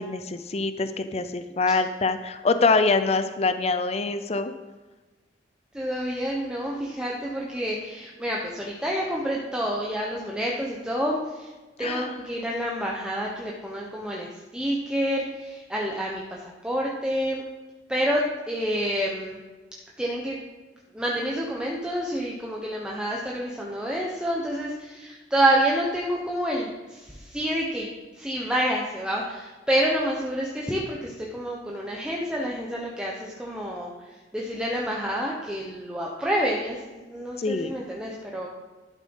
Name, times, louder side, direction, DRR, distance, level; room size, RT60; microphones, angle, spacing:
voice 1, 0.0-4.5 11.8-12.1 37.4-37.7, left 3 dB, 35° left, 9 dB, 0.6 m, -24 dB
voice 2, 5.7-11.5 11.8-17.4 17.9-19.4 20.0-20.4 20.9-38.5, right 1 dB, 5° right, -3 dB, 1.2 m, -28 dB
12.0 x 7.5 x 5.5 m, 1.3 s
head